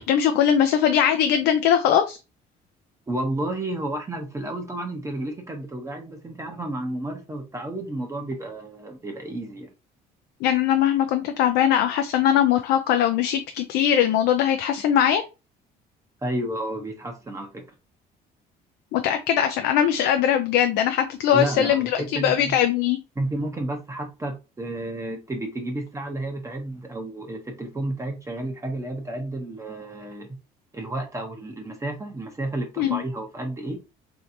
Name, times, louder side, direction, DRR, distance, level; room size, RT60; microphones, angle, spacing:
voice 1, 0.0-2.2 10.4-15.2 18.9-23.0 32.8-33.0, left 9 dB, 85° left, 0.4 m, -21 dB
voice 2, 3.1-9.7 16.2-17.7 21.3-22.5 23.2-30.4 30.7-33.8, right 1 dB, 20° right, 0.6 m, -31 dB
3.2 x 2.7 x 2.5 m
cardioid pair, 110°, 17 cm